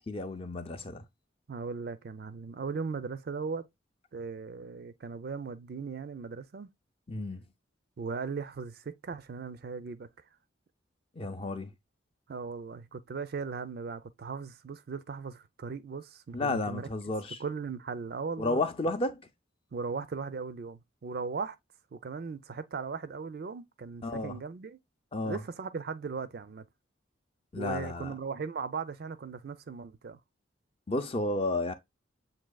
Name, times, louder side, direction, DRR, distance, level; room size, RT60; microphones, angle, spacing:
voice 1, 0.1-1.0 7.1-7.5 11.2-11.7 16.3-17.4 18.4-19.2 24.0-24.3 25.1-25.4 27.5-28.1 30.9-31.7, left 2 dB, 30° left, 0.5 m, -32 dB
voice 2, 1.5-3.7 4.1-6.7 8.0-10.1 12.3-16.9 17.4-18.6 19.7-21.6 21.9-24.8 25.2-26.6 27.6-30.2, right 5 dB, 50° right, 0.4 m, -38 dB
7.3 x 2.7 x 2.2 m
head